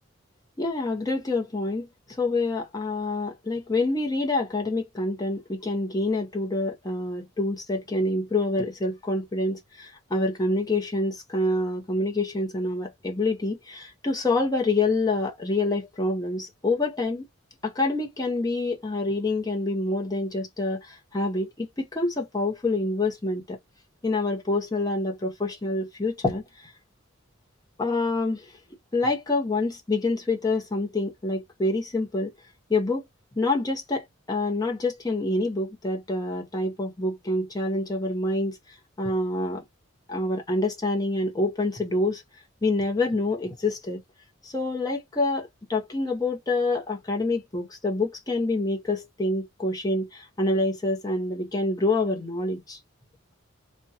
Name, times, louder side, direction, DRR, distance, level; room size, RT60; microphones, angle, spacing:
voice 1, 0.6-1.9 2.2-17.2 17.6-23.6 24.0-26.4 27.8-28.4 28.9-32.3 32.7-33.0 33.4-38.6 39.0-39.6 40.1-42.2 42.6-44.0 44.4-52.8, left 2 dB, 20° left, 0.7 m, -27 dB
2.4 x 2.2 x 2.7 m
head